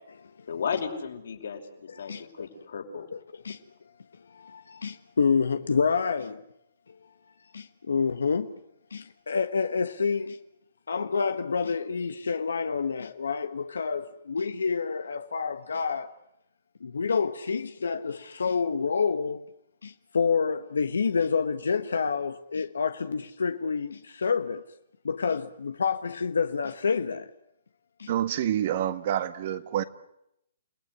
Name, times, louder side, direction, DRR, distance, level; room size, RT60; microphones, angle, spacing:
voice 1, 0.5-3.1, left 6 dB, 75° left, 5.4 m, -34 dB
voice 2, 1.9-2.2 3.1-3.2 3.4-3.6 4.4-6.4 7.5-8.5 8.9-10.4 10.9-16.1 16.8-19.4 19.8-24.6 25.0-27.3 28.0-28.1, left 5 dB, 90° left, 1.3 m, -28 dB
voice 3, 28.1-29.8, right 11 dB, 45° right, 1.6 m, -27 dB
29.5 x 18.0 x 9.7 m
hypercardioid pair, 150°, 0 cm